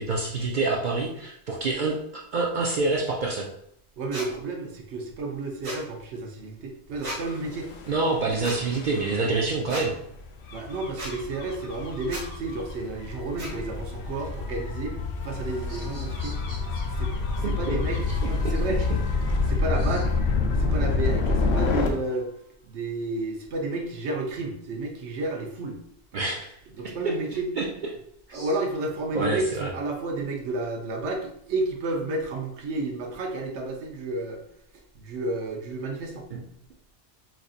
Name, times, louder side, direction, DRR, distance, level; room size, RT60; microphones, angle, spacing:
voice 1, 0.0-3.5 7.9-9.9 15.8-16.8 17.4-17.8 26.1-26.5 26.8-26.9 27.6-27.7 28.3-28.5 29.1-29.7 36.3-36.4, right 3 dB, 60° right, -2 dB, 0.5 m, -27 dB
voice 2, 4.0-7.7 10.5-16.4 16.7-18.8 19.4-20.2 20.5-22.3 22.6-25.8 26.8-27.5 28.3-34.4 34.9-36.3, right 2 dB, 75° right, 2 dB, 1.0 m, -31 dB
sound 1, 4.1-4.3 5.6-5.8 7.0-7.2 8.4-8.6 9.7-9.9 11.0-11.1 12.1-12.2 13.4-13.5, right 1 dB, 90° right, 1.6 m, -34 dB
Gull seagull / Waves surf / Siren, 7.1-21.9, left 3 dB, 70° left, 0.8 m, -28 dB
4.5 x 2.5 x 2.4 m, 0.73 s
omnidirectional pair, 1.2 m